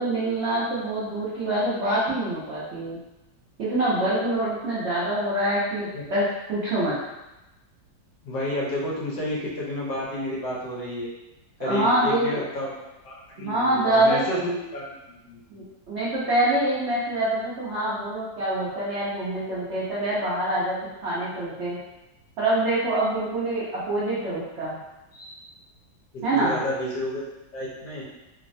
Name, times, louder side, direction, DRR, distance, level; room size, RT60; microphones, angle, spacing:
voice 1, 0.0-3.0 3.6-7.0 11.6-12.4 13.4-14.5 15.5-20.8 21.0-21.8 22.4-24.8 25.1-25.3 26.2-26.6, right 1 dB, 85° right, -9 dB, 0.6 m, -25 dB
voice 2, 8.2-11.1 11.6-12.7 13.0-15.4 26.1-27.2 27.5-28.0, left 1 dB, 70° left, -5 dB, 1.3 m, -30 dB
3.2 x 2.1 x 2.5 m, 0.98 s
omnidirectional pair, 2.1 m